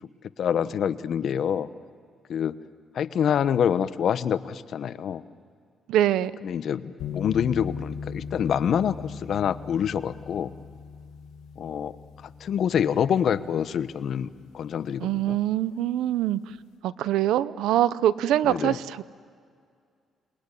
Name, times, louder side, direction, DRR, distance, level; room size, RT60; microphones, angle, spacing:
voice 1, 0.4-1.7 2.3-2.6 2.9-5.2 6.4-10.5 11.6-11.9 12.4-14.3 14.5-15.4 18.4-18.8, left 8 dB, 65° left, 13 dB, 1.0 m, -26 dB
voice 2, 5.9-6.3 15.0-16.5 16.8-19.0, right 12 dB, 85° right, 17 dB, 0.7 m, -24 dB
sound 1, 7.0-15.2, left 6 dB, 90° left, 1.8 m, -39 dB
28.5 x 21.5 x 9.9 m, 2.2 s
cardioid pair, 90°, 0 cm